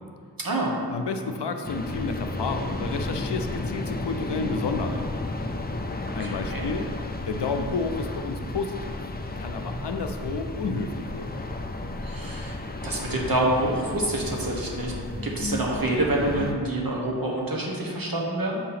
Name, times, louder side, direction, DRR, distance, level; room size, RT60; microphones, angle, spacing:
voice 1, 0.4-0.7 6.2-6.7 12.0-12.5 12.8-14.9 15.2-18.6, right 1 dB, 55° right, -2 dB, 1.2 m, -27 dB
voice 2, 0.9-5.1 6.1-6.9 7.3-8.8 9.4-11.3, left 4 dB, 85° left, 6 dB, 0.6 m, -30 dB
sound 1, 1.6-16.5, left 2 dB, 25° left, 0.4 m, -33 dB
7.2 x 2.8 x 5.7 m, 2.1 s
wide cardioid pair, 50°, 40 cm